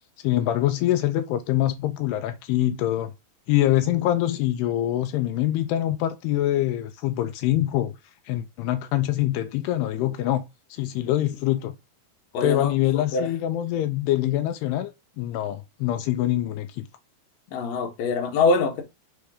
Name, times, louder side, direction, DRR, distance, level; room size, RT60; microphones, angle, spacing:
voice 1, 0.2-3.1 3.5-7.9 8.3-10.4 10.7-11.8 12.4-16.9, left 13 dB, 80° left, 2.5 m, -24 dB
voice 2, 12.3-13.3 17.5-18.8, left 4 dB, 65° left, 1.8 m, -24 dB
6.6 x 3.4 x 4.9 m
omnidirectional pair, 4.9 m